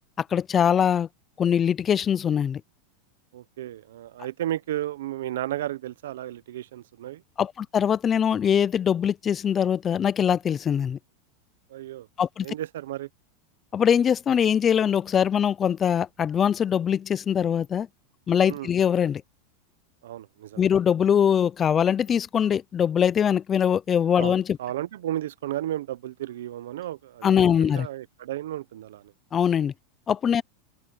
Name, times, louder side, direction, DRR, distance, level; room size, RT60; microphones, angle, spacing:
voice 1, 0.3-1.1 1.4-2.6 7.4-11.0 12.2-12.5 13.7-17.9 18.3-19.2 20.6-24.6 27.2-27.9 29.3-29.7 30.1-30.4, left 8 dB, 20° left, 0.4 m, -22 dB
voice 2, 3.3-7.2 11.7-12.1 12.4-13.1 18.5-18.7 20.0-20.6 24.2-29.0, right 13 dB, 85° right, 0.7 m, -33 dB
supercardioid pair, 165°, 0 cm